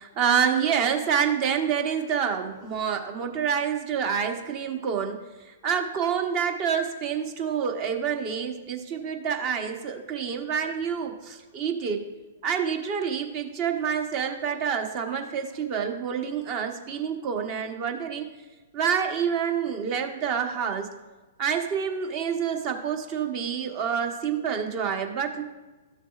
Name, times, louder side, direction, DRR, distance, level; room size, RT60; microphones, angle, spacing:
voice 1, 0.0-12.0 12.4-18.3 18.7-20.9 21.4-25.4, right 7 dB, 40° right, 5 dB, 1.0 m, -27 dB
13.0 x 6.5 x 2.4 m, 1.2 s
hypercardioid pair, 115°, 0 cm